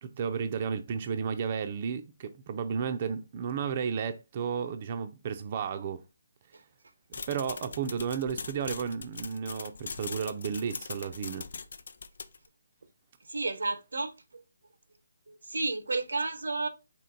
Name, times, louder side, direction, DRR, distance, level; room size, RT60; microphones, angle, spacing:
voice 1, 0.0-6.0 7.3-11.5, right 6 dB, 30° right, 0.4 m, -33 dB
sound 1, 7.1-12.5, left 4 dB, 60° left, 0.5 m, -41 dB
voice 2, 13.3-14.4 15.3-16.7, right 3 dB, 90° right, 0.8 m, -32 dB
4.5 x 3.1 x 3.8 m
hypercardioid pair, 165°, 0 cm